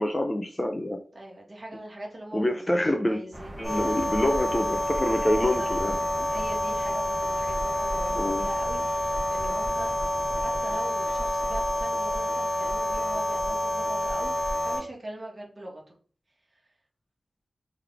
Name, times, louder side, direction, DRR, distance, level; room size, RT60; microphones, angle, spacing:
voice 1, 0.0-1.0 2.3-3.2 3.6-6.3 8.1-8.5, left 1 dB, 15° left, 4 dB, 0.5 m, -26 dB
voice 2, 1.1-2.6 2.9-4.0 5.4-5.7 6.3-15.9, right 1 dB, 35° right, -1 dB, 1.4 m, -41 dB
sound 1, 3.3-10.7, right 1 dB, 20° right, 1.0 m, -42 dB
sound 2, 3.6-14.8, left 1 dB, 40° left, 1.1 m, -28 dB
3.8 x 3.3 x 3.4 m, 0.43 s
wide cardioid pair, 115°, 0 cm